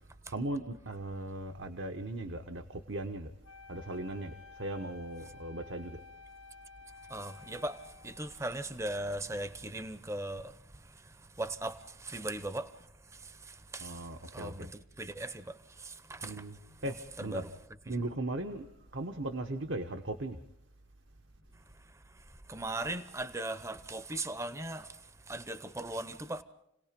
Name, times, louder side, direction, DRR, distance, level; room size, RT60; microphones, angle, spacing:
voice 1, 0.3-3.3 3.7-6.0 13.8-14.7 16.2-16.5 16.8-17.4 17.9-18.7 18.9-20.4, right 1 dB, 60° right, 1.2 m, -38 dB
Wind instrument woodwind instrument, 3.4-8.5, left 5 dB, 85° left, 1.4 m, -53 dB
voice 2, 7.1-16.5 16.9-17.5 17.9-18.0 21.5-26.4, right 2 dB, 15° right, 0.8 m, -39 dB
29.5 x 18.5 x 5.2 m
head